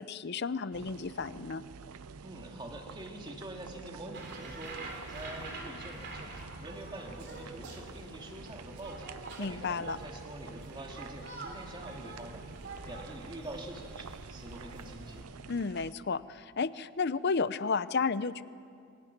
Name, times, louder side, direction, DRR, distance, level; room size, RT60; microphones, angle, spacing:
voice 1, 0.0-1.6 9.4-10.0 15.5-18.4, left 5 dB, 50° left, 15 dB, 0.6 m, -32 dB
sound 1, 0.7-15.9, right 5 dB, 85° right, 0.6 m, -49 dB
voice 2, 2.2-9.1 9.4-12.5 12.9-15.3, right 1 dB, 20° right, 1 dB, 2.4 m, -45 dB
sound 2, 4.1-15.2, right 2 dB, 50° right, 3.1 m, -46 dB
27.0 x 24.5 x 6.0 m, 2.4 s
head